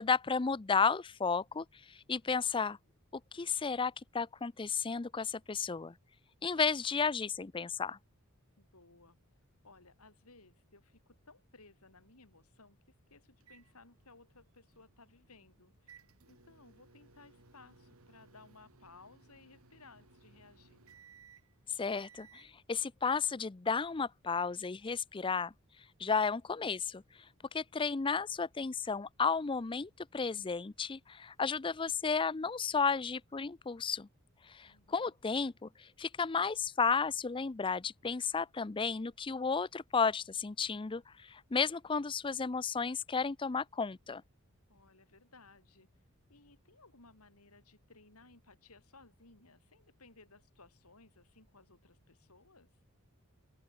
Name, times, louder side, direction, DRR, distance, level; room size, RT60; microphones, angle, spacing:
voice 1, 0.0-2.8 3.1-5.9 6.4-8.0 21.8-25.5 26.0-27.0 27.5-34.1 34.5-44.2, left 5 dB, 20° left, 0.5 m, -33 dB
voice 2, 8.6-9.2 9.6-16.0 16.3-20.8 34.6-35.1 44.7-52.8, left 3 dB, 80° left, 5.6 m, -60 dB
sound 1, 13.4-22.5, right 5 dB, 70° right, 3.2 m, -62 dB
open air
head